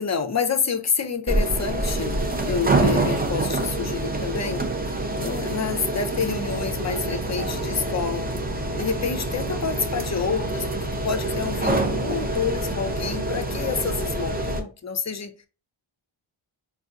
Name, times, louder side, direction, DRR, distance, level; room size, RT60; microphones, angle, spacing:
voice 1, 0.0-8.3 8.7-15.5, left 6 dB, 35° left, 8 dB, 0.5 m, -28 dB
sound 1, 1.3-14.6, right 2 dB, 20° right, 0.5 m, -26 dB
3.8 x 2.3 x 2.4 m, 0.33 s
wide cardioid pair, 90°, 49 cm